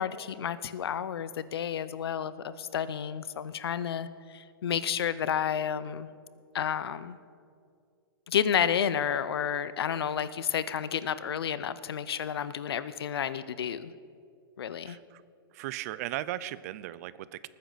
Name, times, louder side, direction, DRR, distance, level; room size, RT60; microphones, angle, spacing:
voice 1, 0.0-6.1 6.5-7.2 8.3-13.9 14.6-15.0, left 8 dB, 85° left, 15 dB, 0.6 m, -31 dB
voice 2, 14.8-15.2 15.5-17.5, right 14 dB, 40° right, 18 dB, 0.4 m, -37 dB
19.5 x 9.6 x 4.0 m, 2.3 s
hypercardioid pair, 150°, 13 cm